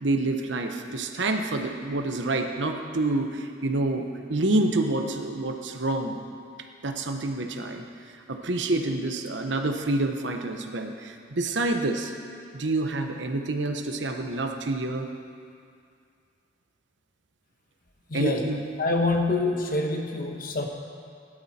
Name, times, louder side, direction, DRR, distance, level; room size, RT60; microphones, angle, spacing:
voice 1, 0.0-6.2 6.8-7.8 8.3-12.1 12.5-15.1 18.1-18.7, right 2 dB, 75° right, 5 dB, 1.0 m, -27 dB
voice 2, 18.1-18.4 18.8-20.7, left 2 dB, 50° left, 2 dB, 1.3 m, -26 dB
17.0 x 12.0 x 4.3 m, 2.3 s
head